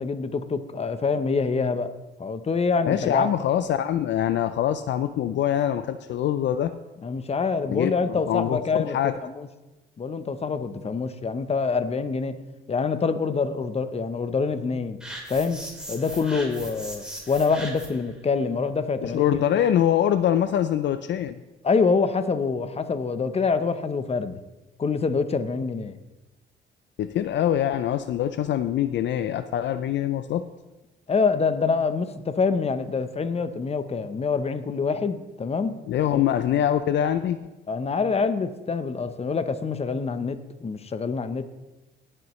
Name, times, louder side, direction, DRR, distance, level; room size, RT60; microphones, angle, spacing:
voice 1, 0.0-1.9 2.2-3.3 7.0-9.0 9.2-9.5 10.0-12.3 12.7-15.0 15.3-15.6 15.9-19.4 21.6-24.4 24.8-26.0 31.1-35.7 36.1-36.2 37.7-41.5, left 4 dB, 30° left, 11 dB, 0.8 m, -26 dB
voice 2, 2.9-6.7 7.7-7.9 8.3-9.2 19.0-21.4 27.0-30.4 35.9-37.4, left 10 dB, 65° left, 11 dB, 0.5 m, -24 dB
sound 1, 15.0-18.1, right 1 dB, 5° right, 3.0 m, -38 dB
17.5 x 7.7 x 3.2 m, 1.1 s
cardioid pair, 90°, 20 cm